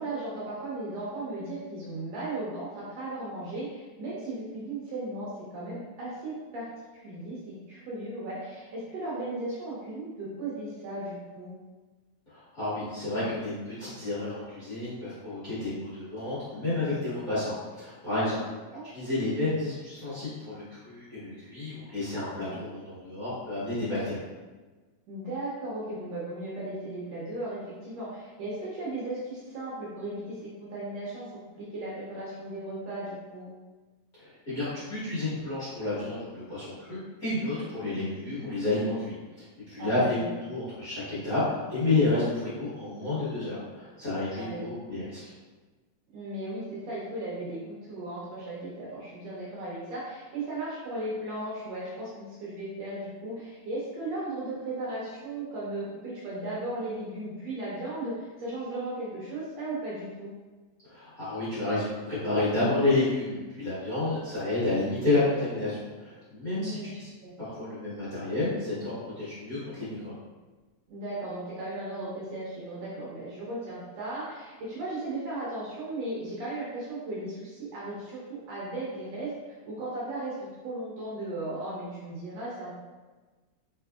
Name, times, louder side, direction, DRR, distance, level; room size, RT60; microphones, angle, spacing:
voice 1, 0.0-6.7 6.9-11.5 18.7-18.8 22.3-22.7 25.1-31.3 31.6-33.5 39.8-40.3 44.4-44.6 46.1-60.3 66.5-66.9 67.2-67.3 70.9-80.3 80.6-82.8, right 2 dB, 70° right, -7 dB, 1.8 m, -36 dB
voice 2, 12.3-18.5 18.8-24.2 34.2-40.2 40.5-41.4 41.7-45.3 60.8-67.1 67.4-70.1, left 2 dB, 40° left, -14 dB, 1.5 m, -30 dB
4.2 x 3.8 x 2.3 m, 1.3 s
omnidirectional pair, 3.4 m